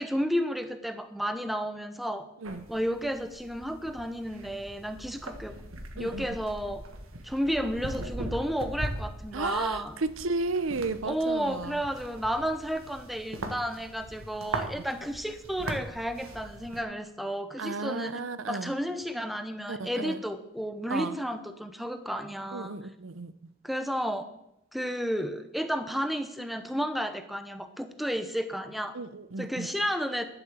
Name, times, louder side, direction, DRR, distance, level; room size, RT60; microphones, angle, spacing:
voice 1, 0.0-2.3 2.7-5.6 6.0-6.8 7.2-9.9 11.0-18.2 18.5-22.8 23.6-24.3 24.7-29.0 29.4-30.3, equal, ahead, 9 dB, 0.8 m, -32 dB
sound 1, 2.4-16.8, right 1 dB, 85° right, 1.6 m, -40 dB
voice 2, 9.3-11.8 17.6-18.7 19.7-20.2 20.9-21.1 22.5-23.3 28.9-29.7, right 3 dB, 70° right, 13 dB, 0.7 m, -33 dB
11.5 x 7.4 x 7.4 m, 0.80 s
head